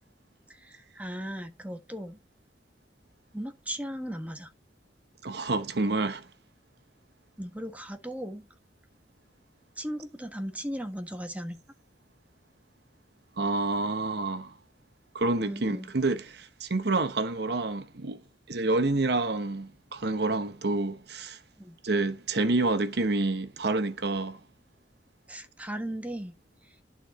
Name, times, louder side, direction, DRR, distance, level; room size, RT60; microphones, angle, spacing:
voice 1, 0.5-2.2 3.3-4.5 7.4-8.5 9.8-11.6 15.4-15.9 21.6-21.8 25.3-26.3 26.6-26.7, equal, 10° right, 1.4 m, -37 dB
voice 2, 5.2-6.3 13.4-14.5 15.1-18.2 18.5-21.4 21.8-24.4, right 2 dB, 65° right, 1.0 m, -28 dB
11.5 x 4.2 x 4.2 m
head